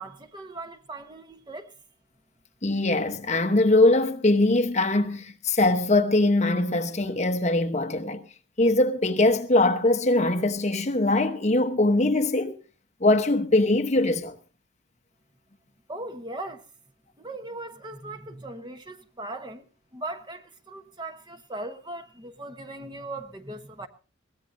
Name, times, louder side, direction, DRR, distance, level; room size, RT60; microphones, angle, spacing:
voice 1, 0.0-1.7 15.9-16.6 17.2-19.6 19.9-23.9, right 2 dB, 20° right, 1.0 m, -38 dB
voice 2, 2.6-8.2 8.6-12.6 13.0-14.3, left 2 dB, 35° left, 1.0 m, -22 dB
22.0 x 16.5 x 2.6 m
head